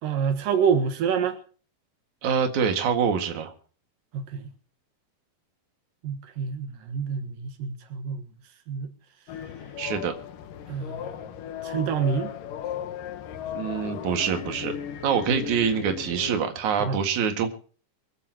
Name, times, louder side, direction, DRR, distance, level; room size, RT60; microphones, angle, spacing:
voice 1, 0.0-1.4 4.1-4.5 6.0-8.2 8.7-8.9 10.7-11.1 11.6-12.3 16.8-17.0, right 6 dB, 85° right, 6 dB, 3.2 m, -27 dB
voice 2, 2.2-3.5 9.8-10.1 13.5-14.7 15.0-17.5, right 7 dB, 65° right, 5 dB, 3.3 m, -25 dB
sound 1, 9.3-16.4, left 9 dB, 85° left, 2.9 m, -36 dB
24.0 x 14.5 x 3.0 m, 0.40 s
omnidirectional pair, 3.7 m